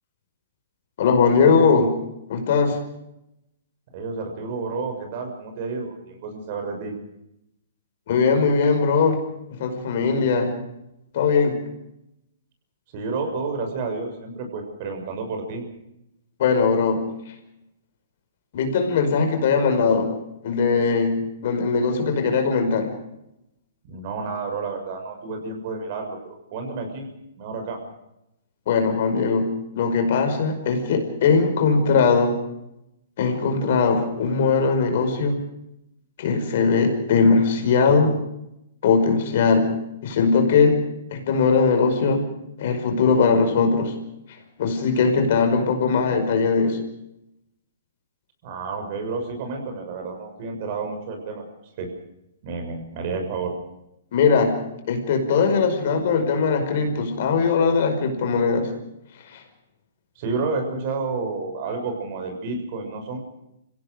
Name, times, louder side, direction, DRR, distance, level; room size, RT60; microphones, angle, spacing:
voice 1, 1.0-1.9 2.3-2.8 8.1-9.2 9.6-10.6 11.1-11.6 16.4-17.0 18.5-20.1 20.4-22.9 28.7-29.5 29.8-32.3 33.2-35.3 36.2-38.2 38.8-39.7 40.0-40.8 41.1-42.2 42.6-44.0 44.6-46.8 54.1-54.6 54.9-58.7 59.3-59.4, left 5 dB, 55° left, 5 dB, 5.3 m, -20 dB
voice 2, 3.9-6.9 12.9-15.6 23.8-26.2 26.5-27.1 27.4-27.8 48.4-51.4 51.8-51.9 52.4-53.5 60.1-63.2, right 4 dB, 50° right, 4 dB, 6.7 m, -30 dB
26.5 x 16.5 x 6.6 m, 0.85 s
hypercardioid pair, 125°, 0 cm